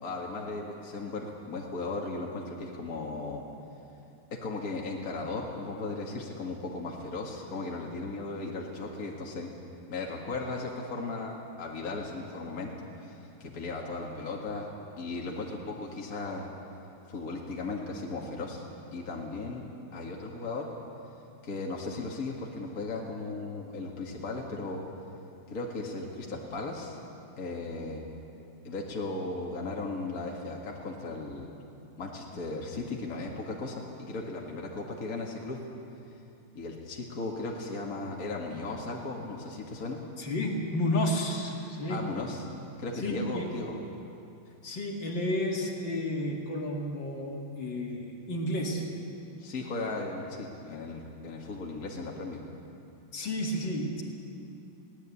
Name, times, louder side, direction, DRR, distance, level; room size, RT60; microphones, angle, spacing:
voice 1, 0.0-3.4 4.3-9.5 9.9-14.7 15.0-16.5 17.1-18.6 18.9-19.7 19.9-20.7 21.4-24.8 25.5-27.0 27.4-28.0 28.6-31.5 32.0-35.6 36.5-40.0 41.9-42.4 42.8-43.8 49.4-52.4, left 3 dB, 45° left, -1 dB, 2.3 m, -36 dB
voice 2, 40.2-42.1 43.0-43.5 44.6-48.9 53.1-54.0, left 1 dB, 60° left, 0 dB, 2.9 m, -31 dB
22.0 x 17.5 x 8.6 m, 2.7 s
omnidirectional pair, 2.3 m